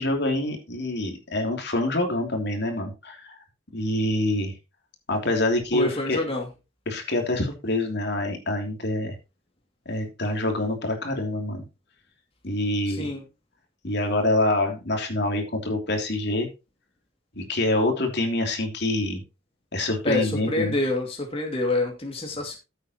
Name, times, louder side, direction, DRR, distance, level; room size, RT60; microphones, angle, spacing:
voice 1, 0.0-3.4 3.7-4.5 5.1-6.2 6.9-9.1 9.8-11.6 12.4-13.1 13.8-16.5 17.4-19.2 19.7-20.7, left 1 dB, 55° left, 4 dB, 3.1 m, -26 dB
voice 2, 5.7-6.5 12.9-13.2 20.0-22.6, left 2 dB, 30° left, 1 dB, 2.6 m, -27 dB
14.5 x 8.3 x 3.1 m, 0.27 s
head